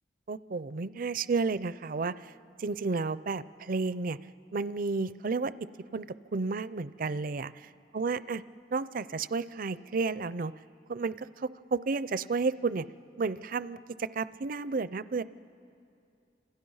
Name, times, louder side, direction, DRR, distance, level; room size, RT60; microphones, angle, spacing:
voice 1, 0.3-2.3 2.6-4.2 4.5-5.5 5.9-6.1 6.3-8.4 8.7-10.5 10.9-12.8 13.2-15.2, right 4 dB, 55° right, 16 dB, 0.5 m, -32 dB
28.5 x 27.0 x 5.6 m, 2.6 s
head